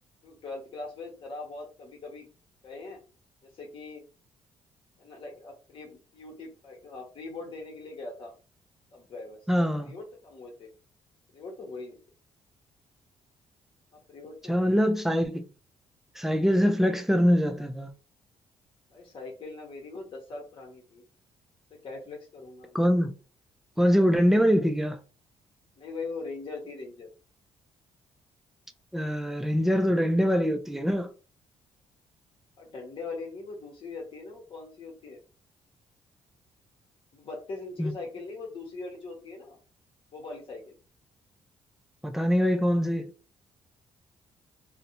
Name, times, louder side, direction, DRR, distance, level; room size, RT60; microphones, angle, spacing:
voice 1, 0.2-2.3 2.6-3.0 3.4-4.0 5.0-8.3 8.9-9.4 9.8-10.7 11.3-12.0 13.9-14.8 18.9-21.0 21.7-22.8 25.8-27.1 32.6-35.2 37.1-39.6 40.1-40.7, left 3 dB, 50° left, 0.9 m, -41 dB
voice 2, 9.5-9.9 14.5-15.5 16.2-17.9 22.7-23.1 23.8-25.0 28.9-31.1 37.8-37.9 42.0-43.1, equal, 5° right, 0.4 m, -23 dB
2.5 x 2.1 x 2.8 m
cardioid pair, 85°, 12 cm